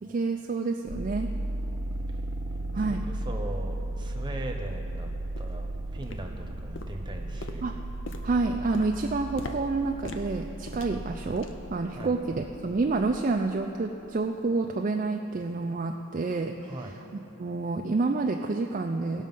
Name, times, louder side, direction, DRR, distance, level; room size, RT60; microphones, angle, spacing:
voice 1, 0.0-1.3 2.7-3.0 7.6-7.8 8.2-17.0 17.4-19.3, right 3 dB, 35° right, 3 dB, 0.4 m, -29 dB
sound 1, 0.9-13.5, right 1 dB, 80° right, 0.7 m, -35 dB
voice 2, 2.7-5.1 5.4-7.7 12.0-12.1 16.6-17.0, right 1 dB, 20° right, 2 dB, 0.9 m, -40 dB
sound 2, 3.4-3.5 4.0-4.1 4.7-4.8 5.4-5.7 6.0-6.5 6.8-11.7 12.0-12.3 12.6-12.8 13.4-13.5, left 3 dB, 60° left, 0.7 m, -44 dB
18.0 x 6.3 x 5.5 m, 3.0 s
head